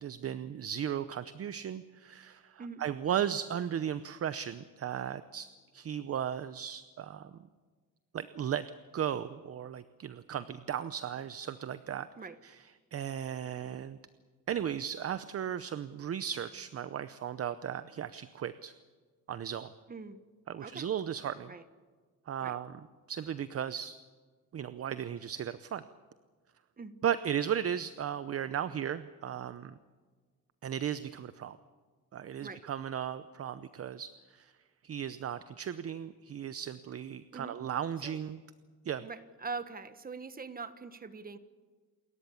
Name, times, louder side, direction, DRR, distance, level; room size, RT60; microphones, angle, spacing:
voice 1, 0.0-5.5 5.7-7.3 8.1-8.7 8.9-12.1 12.4-12.6 12.9-14.0 14.5-18.7 19.3-19.7 20.5-21.5 22.3-22.8 23.1-24.0 24.5-25.8 27.0-29.8 30.6-31.6 32.1-34.5 34.8-38.4 38.8-39.0, right 9 dB, 40° right, 13 dB, 0.8 m, -36 dB
voice 2, 19.9-20.2 20.6-20.9 21.5-21.6 22.4-22.6 26.8-27.0 32.4-32.6 37.3-37.6 38.0-38.2 39.0-41.4, right 4 dB, 25° right, 11 dB, 1.4 m, -43 dB
28.5 x 14.0 x 8.5 m, 1.5 s
cardioid pair, 120°, 35 cm